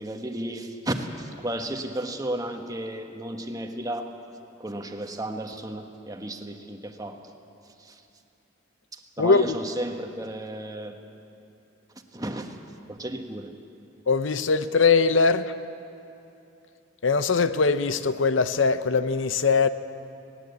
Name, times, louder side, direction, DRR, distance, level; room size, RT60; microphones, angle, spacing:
voice 1, 0.0-4.1 4.6-7.3 7.8-8.0 8.9-11.0 12.1-12.6 12.9-13.5, right 1 dB, 20° right, 1.3 m, -33 dB
voice 2, 9.2-9.6 14.1-15.5 17.0-19.7, left 4 dB, 80° left, 0.7 m, -21 dB
20.0 x 18.0 x 8.1 m
head